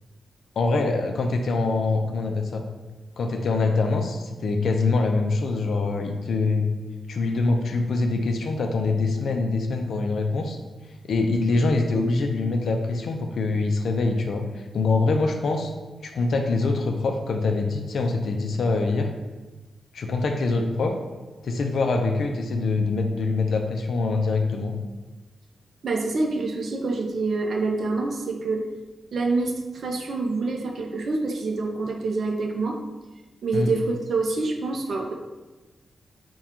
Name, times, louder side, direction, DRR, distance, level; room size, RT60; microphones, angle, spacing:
voice 1, 0.6-2.6 3.2-6.6 7.1-10.6 11.1-15.7 16.0-19.1 19.9-20.9 21.4-24.7 33.5-33.7, left 3 dB, 65° left, 4 dB, 0.4 m, -24 dB
voice 2, 25.8-28.7 29.1-32.8 33.4-35.1, right 3 dB, 55° right, 2 dB, 0.5 m, -26 dB
3.6 x 2.3 x 4.3 m, 1.2 s
wide cardioid pair, 165°, 0 cm